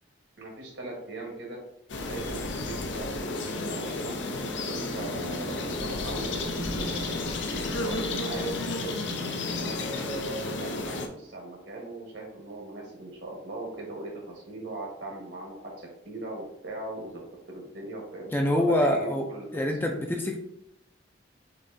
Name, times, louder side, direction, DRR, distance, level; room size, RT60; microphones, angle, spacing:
voice 1, 0.4-1.6 2.0-7.2 7.7-9.0 9.5-17.2 17.5-19.5 19.8-20.0, right 2 dB, 70° right, -1 dB, 1.6 m, -39 dB
sound 1, 1.9-11.1, left 2 dB, 70° left, 0.6 m, -32 dB
sound 2, 4.7-9.7, right 1 dB, 40° right, 0.6 m, -40 dB
voice 2, 18.3-19.3 19.5-20.4, left 1 dB, 10° left, 2 dB, 0.4 m, -25 dB
6.6 x 2.9 x 2.7 m, 0.82 s
head